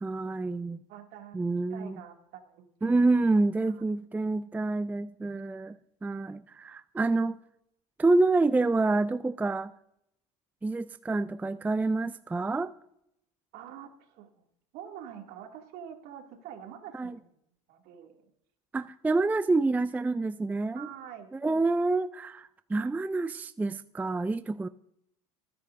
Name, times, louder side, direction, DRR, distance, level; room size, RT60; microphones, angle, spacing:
voice 1, 0.0-0.8 1.3-2.0 2.8-5.8 6.0-7.4 8.0-9.7 10.6-12.7 16.9-17.2 18.7-20.9 21.3-24.7, right 3 dB, 10° right, 0.4 m, -27 dB
voice 2, 0.9-1.4 1.7-3.0 13.5-14.4 14.7-17.4 17.7-18.3 20.7-21.6, right 9 dB, 60° right, 2.5 m, -46 dB
26.5 x 10.0 x 2.6 m
hypercardioid pair, 90°, 18 cm